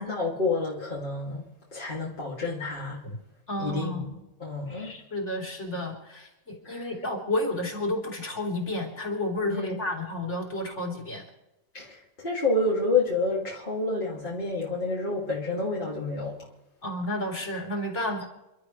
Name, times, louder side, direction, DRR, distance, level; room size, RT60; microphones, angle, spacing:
voice 1, 0.0-1.4 1.7-3.0 3.6-4.1 4.4-5.0 6.6-6.9 9.5-9.8 11.7-16.5, left 3 dB, 35° left, -5 dB, 2.7 m, -29 dB
voice 2, 3.5-4.0 4.7-11.2 16.8-18.2, left 1 dB, 50° left, -1 dB, 3.9 m, -31 dB
30.0 x 12.5 x 3.2 m, 0.95 s
omnidirectional pair, 1.5 m